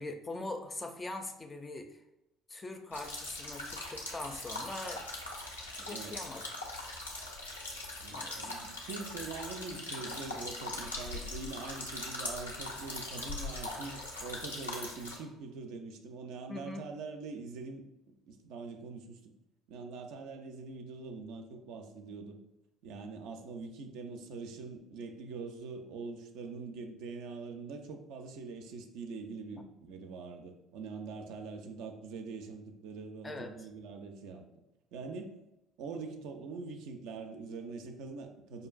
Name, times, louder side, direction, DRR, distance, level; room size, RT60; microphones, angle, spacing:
voice 1, 0.0-2.0 2.5-5.0 5.8-6.4 8.1-8.5 16.5-16.8 33.2-33.5, left 2 dB, 25° left, 6 dB, 0.4 m, -42 dB
sound 1, 2.9-15.2, left 2 dB, 85° left, 0.5 m, -41 dB
voice 2, 8.0-17.8 18.3-19.2 19.7-22.4 22.8-34.4 34.9-35.4 35.8-38.7, right 4 dB, 65° right, 4 dB, 0.4 m, -43 dB
5.0 x 2.4 x 2.3 m, 0.91 s
figure-of-eight pair, 55°, 0 cm